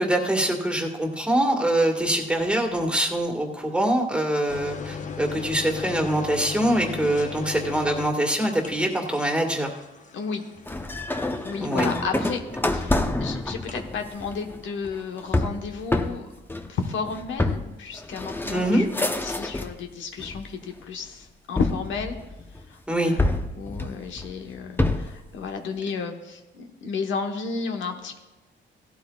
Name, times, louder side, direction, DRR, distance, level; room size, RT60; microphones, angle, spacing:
voice 1, 0.0-9.7 11.6-11.9 18.5-18.9 22.9-23.1, right 1 dB, 5° right, 2 dB, 1.7 m, -24 dB
sound 1, 4.5-12.2 13.5-13.9, left 5 dB, 40° left, 0.9 m, -37 dB
voice 2, 10.1-10.5 11.4-12.4 12.7-16.3 16.7-22.1 22.7-28.2, left 5 dB, 75° left, 4 dB, 1.2 m, -32 dB
sound 2, 10.7-19.8 20.2-20.8 21.6-22.6 23.2-25.2, left 2 dB, 10° left, 0.8 m, -28 dB
16.0 x 12.0 x 2.4 m, 1.1 s
cardioid pair, 90°, 20 cm